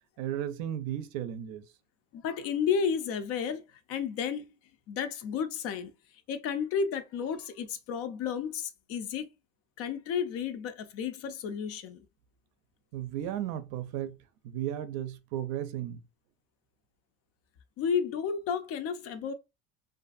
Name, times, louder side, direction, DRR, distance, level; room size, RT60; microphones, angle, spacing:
voice 1, 0.2-1.6 12.9-14.2 14.4-16.0, right 11 dB, 70° right, 0.5 m, -34 dB
voice 2, 2.1-3.6 3.9-4.4 4.9-5.9 6.3-9.3 9.8-12.1 17.8-19.3, left 7 dB, 50° left, 0.5 m, -32 dB
2.6 x 2.5 x 2.4 m
cardioid pair, 150°, 31 cm